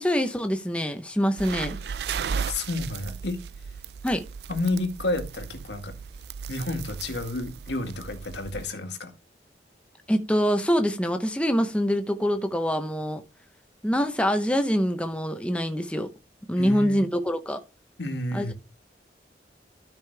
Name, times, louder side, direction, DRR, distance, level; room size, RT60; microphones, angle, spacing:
voice 1, 0.0-1.8 4.0-4.2 10.1-13.2 13.8-16.1 16.5-17.6 18.3-18.5, equal, 5° left, 0.8 m, -25 dB
sound 1, 1.4-8.7, right 6 dB, 65° right, 0.4 m, -36 dB
voice 2, 2.4-3.4 4.5-5.9 6.5-9.1 16.6-17.0 18.0-18.5, left 2 dB, 80° left, 1.9 m, -30 dB
12.5 x 5.2 x 3.3 m
head